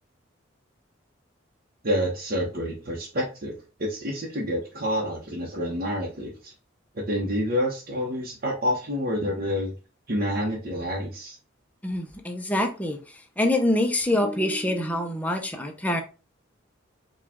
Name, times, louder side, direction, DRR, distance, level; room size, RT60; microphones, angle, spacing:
voice 1, 1.8-3.5 3.9-6.5 7.1-9.7 10.1-11.4, equal, 45° right, 0.9 m, -28 dB
voice 2, 11.8-16.0, left 1 dB, 5° left, 0.6 m, -25 dB
4.9 x 2.4 x 3.5 m
head